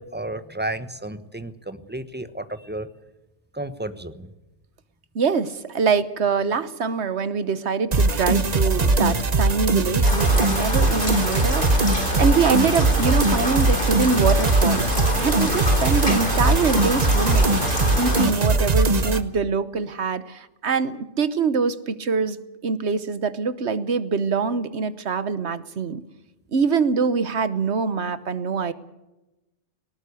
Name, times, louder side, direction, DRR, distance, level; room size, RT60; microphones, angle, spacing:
voice 1, 0.0-2.9 3.5-4.3, right 1 dB, 10° right, 12 dB, 1.1 m, -32 dB
voice 2, 5.1-14.9 15.2-22.4 22.6-26.0 26.5-28.7, right 5 dB, 70° right, 14 dB, 1.3 m, -24 dB
sound 1, 7.9-19.2, right 2 dB, 35° right, 1.1 m, -20 dB
Rain, 10.0-18.3, left 1 dB, 45° left, 3.8 m, -27 dB
18.5 x 18.5 x 8.4 m, 0.99 s
omnidirectional pair, 1.2 m